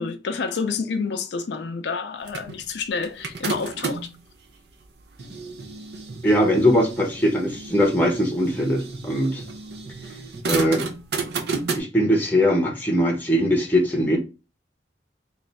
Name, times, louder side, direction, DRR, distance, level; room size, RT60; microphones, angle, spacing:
voice 1, 0.0-4.1, left 5 dB, 65° left, 0.4 m, -28 dB
sound 1, 2.3-4.2 4.8-11.8, right 4 dB, 60° right, 0.6 m, -32 dB
voice 2, 6.2-9.4 10.4-10.8 11.8-14.2, equal, 10° left, 0.7 m, -21 dB
3.2 x 2.4 x 4.0 m
head